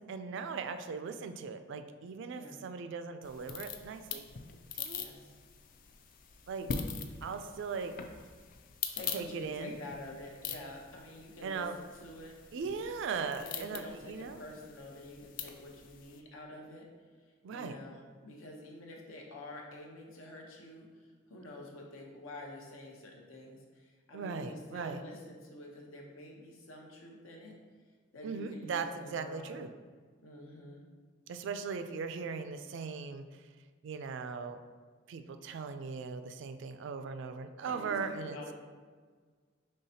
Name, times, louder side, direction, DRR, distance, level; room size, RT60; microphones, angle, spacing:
voice 1, 0.0-4.2 4.8-5.1 6.5-6.7 7.2-7.9 9.1-9.8 11.4-11.8 12.5-14.4 17.4-17.8 24.1-25.0 28.2-29.7 31.3-33.3 33.8-34.6 35.1-38.4, right 5 dB, 60° right, 9 dB, 0.3 m, -39 dB
sound 1, 3.2-16.2, left 6 dB, 45° left, 0.3 m, -43 dB
voice 2, 4.9-5.4 8.9-12.3 13.4-16.9 17.5-27.5 28.1-29.6 30.2-30.8 37.7-38.5, left 1 dB, 85° left, 0 dB, 0.9 m, -48 dB
5.5 x 3.2 x 2.8 m, 1.5 s
head